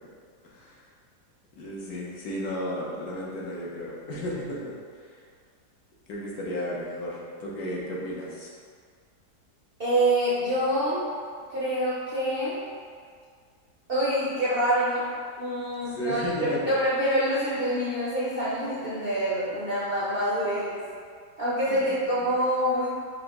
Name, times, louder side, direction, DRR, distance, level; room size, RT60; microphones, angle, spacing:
voice 1, 1.6-4.8 6.1-8.5 15.8-16.7 21.7-21.9 22.2-22.3, equal, 70° left, -5 dB, 1.2 m, -33 dB
voice 2, 9.8-11.1 11.5-12.6 13.9-15.0 15.4-20.8 21.4-22.9, right 1 dB, 55° right, -9 dB, 0.6 m, -26 dB
4.9 x 2.5 x 3.5 m, 2.1 s
omnidirectional pair, 1.8 m